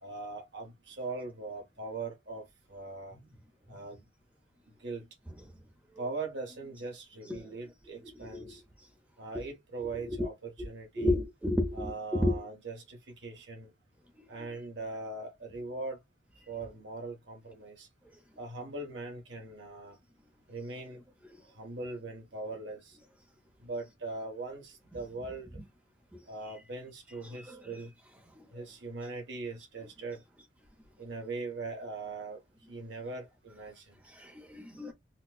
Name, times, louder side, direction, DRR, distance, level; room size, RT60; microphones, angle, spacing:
voice 1, 0.0-2.4 2.7-3.2 3.7-4.0 4.8-5.1 6.0-8.6 9.2-11.2 11.7-13.7 14.3-16.0 16.5-17.9 18.4-20.0 20.5-21.0 21.6-22.9 23.6-25.5 26.3-27.9 28.5-30.2 31.0-32.4 32.7-34.0, right 3 dB, 60° right, 1.4 m, -40 dB
voice 2, 8.0-8.6 9.3-9.5 9.8-10.2 11.0-12.4 26.1-26.2 27.5-27.6 34.1-34.9, left 1 dB, 5° right, 0.8 m, -32 dB
4.3 x 2.3 x 2.3 m
head